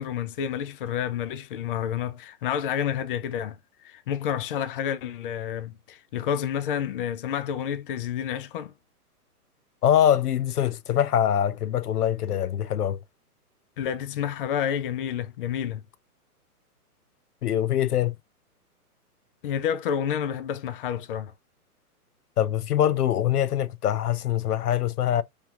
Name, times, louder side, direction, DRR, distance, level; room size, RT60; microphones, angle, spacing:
voice 1, 0.0-3.6 3.8-8.7 13.8-15.8 19.4-21.3, left 9 dB, 35° left, 0.5 m, -29 dB
voice 2, 9.8-13.0 17.4-18.1 22.4-25.2, left 10 dB, 75° left, 0.8 m, -23 dB
5.3 x 3.1 x 2.5 m
hypercardioid pair, 145°, 46 cm